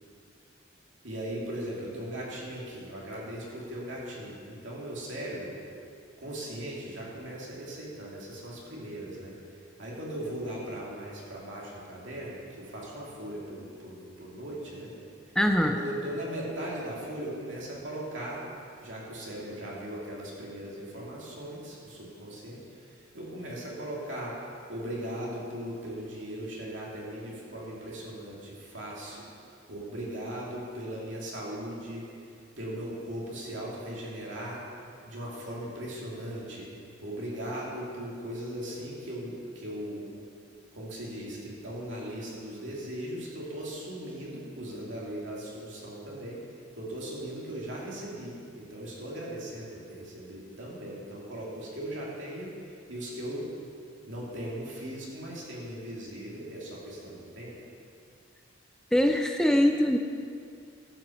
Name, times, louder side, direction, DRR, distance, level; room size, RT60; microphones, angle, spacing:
voice 1, 1.0-5.5 6.2-14.9 15.6-18.5 18.8-24.4 24.7-32.3 32.6-34.6 35.0-36.7 37.0-40.1 40.7-46.4 46.7-53.5 54.1-57.6, right 1 dB, 70° right, -5 dB, 2.8 m, -38 dB
voice 2, 15.4-15.8 58.9-60.0, equal, 5° left, 5 dB, 0.4 m, -23 dB
11.5 x 6.1 x 7.4 m, 2.5 s
head